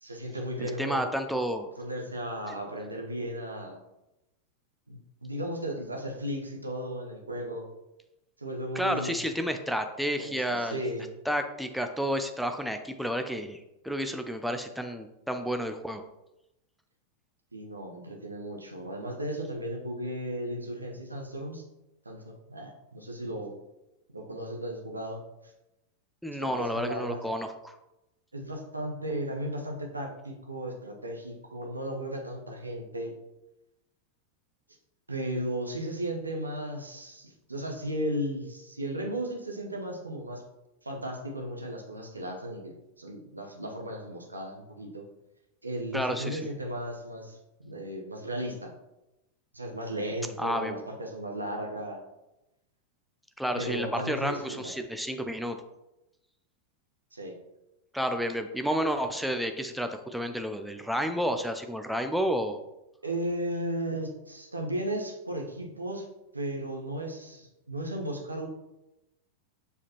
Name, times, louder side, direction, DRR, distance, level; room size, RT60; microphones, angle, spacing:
voice 1, 0.0-1.0 1.8-3.8 4.9-7.7 8.4-9.2 10.2-11.1 17.5-21.6 22.0-23.5 24.1-25.5 26.4-27.2 28.3-33.1 35.1-40.4 40.8-45.1 45.6-48.7 49.5-52.0 53.6-54.7 57.1-57.3 63.0-66.1 66.3-68.5, right 1 dB, 80° right, 2 dB, 1.0 m, -35 dB
voice 2, 0.6-1.7 8.7-10.8 11.3-16.0 26.2-27.7 45.9-46.4 50.4-50.8 53.4-55.6 57.9-62.6, equal, ahead, 6 dB, 0.4 m, -31 dB
6.7 x 4.8 x 2.9 m, 0.94 s
figure-of-eight pair, 90°, 0 cm